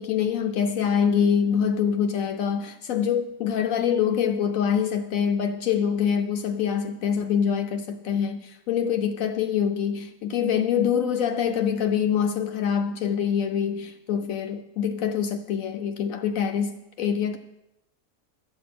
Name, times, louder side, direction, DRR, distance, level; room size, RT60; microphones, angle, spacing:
voice 1, 0.0-17.4, left 8 dB, 70° left, 0.9 m, -25 dB
12.5 x 7.6 x 5.8 m
omnidirectional pair, 1.6 m